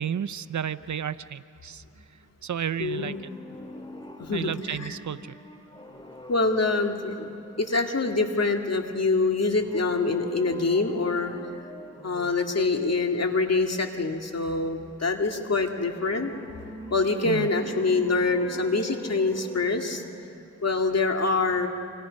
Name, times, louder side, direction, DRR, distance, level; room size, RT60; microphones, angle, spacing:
voice 1, 0.0-1.8 2.4-3.3 4.3-5.4 17.2-17.5, right 8 dB, 60° right, 15 dB, 0.6 m, -32 dB
sound 1, 2.7-8.5 9.5-12.6 15.3-20.5 20.8-20.9, equal, 15° left, 2.4 m, -45 dB
voice 2, 2.8-3.2 4.2-4.9 6.3-7.3 7.6-11.3 12.0-16.3 16.9-20.0 20.6-21.7, left 3 dB, 50° left, 3 dB, 2.4 m, -25 dB
29.5 x 26.0 x 5.4 m, 2.8 s
cardioid pair, 60°, 32 cm